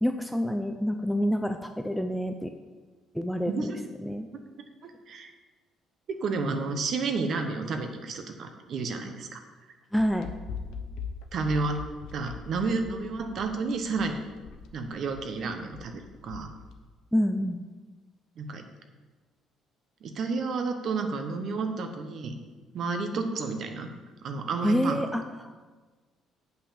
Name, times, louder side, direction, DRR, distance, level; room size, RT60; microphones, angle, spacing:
voice 1, 0.0-2.5 3.1-3.7 4.0-4.3 9.9-10.3 17.1-17.6 24.6-25.5, equal, ahead, 6 dB, 0.4 m, -27 dB
voice 2, 3.4-3.8 4.8-5.3 6.1-9.4 11.3-11.8 12.1-14.2 14.7-16.5 18.4-18.6 20.0-22.4 22.7-23.9 24.2-25.1, right 4 dB, 40° right, 6 dB, 0.9 m, -31 dB
sound 1, 10.0-16.8, left 6 dB, 65° left, 0.8 m, -41 dB
7.8 x 5.8 x 7.0 m, 1.3 s
cardioid pair, 170°, 0 cm